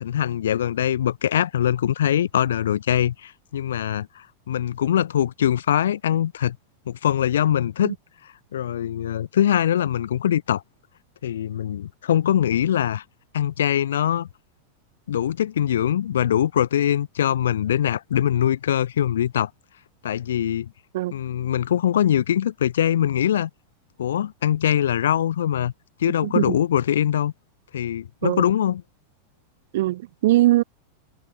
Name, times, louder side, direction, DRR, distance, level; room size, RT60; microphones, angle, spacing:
voice 1, 0.0-6.6 6.9-8.0 8.5-10.6 11.2-13.0 13.3-14.3 15.1-19.5 20.0-20.7 21.1-23.5 24.0-25.7 26.0-27.3 27.7-28.8, left 10 dB, 60° left, 0.7 m, -22 dB
voice 2, 29.7-30.6, right 16 dB, 55° right, 0.4 m, -20 dB
figure-of-eight pair, 90°, 0 cm